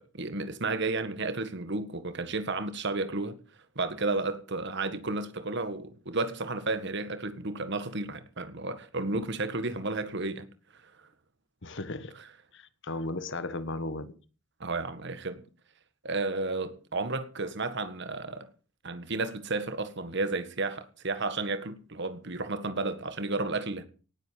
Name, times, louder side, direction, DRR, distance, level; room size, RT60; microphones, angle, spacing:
voice 1, 0.0-3.4 3.8-10.5 14.6-15.4 16.0-18.5 18.8-23.9, right 3 dB, 60° right, 1.8 m, -32 dB
voice 2, 11.6-12.2 12.5-14.1, left 2 dB, 60° left, 1.6 m, -35 dB
18.5 x 8.1 x 7.5 m
head